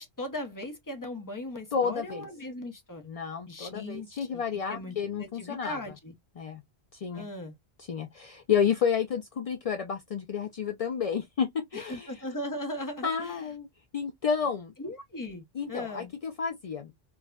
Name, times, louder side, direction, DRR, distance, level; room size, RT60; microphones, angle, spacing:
voice 1, 0.0-3.1 3.5-6.1 7.1-7.5 11.7-13.4 14.8-16.1, left 1 dB, 20° left, 0.7 m, -38 dB
voice 2, 1.7-2.2 3.0-5.8 6.4-6.6 6.9-7.3 7.9-12.1 13.0-13.7 13.9-14.7 15.6-17.0, left 7 dB, 50° left, 0.4 m, -30 dB
4.6 x 2.1 x 2.3 m
omnidirectional pair, 1.1 m